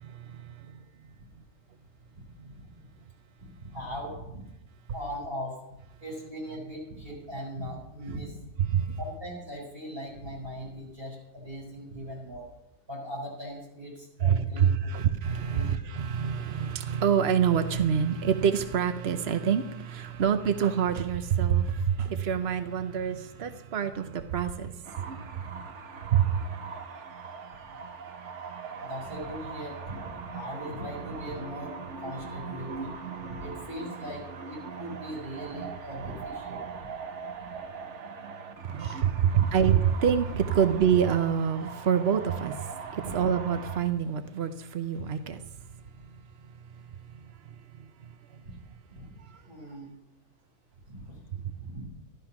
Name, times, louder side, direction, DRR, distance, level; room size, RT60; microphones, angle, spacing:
voice 1, 3.4-4.5 4.9-5.6 6.0-8.4 9.0-12.5 12.9-14.9 15.5-15.7 28.8-31.7 32.0-32.9 33.2-36.9 38.8-39.0 43.0-43.2 48.5-48.6 48.9-49.1 49.5-49.9 50.9-51.2 51.6-51.9, equal, 25° right, -4 dB, 5.5 m, -39 dB
voice 2, 8.6-9.0 14.2-25.1 26.1-26.3 38.7-42.5 42.9-45.4, right 8 dB, 65° right, 9 dB, 0.6 m, -26 dB
sound 1, 24.8-43.8, right 5 dB, 50° right, 1.0 m, -41 dB
13.5 x 12.0 x 5.9 m, 0.87 s
omnidirectional pair, 2.1 m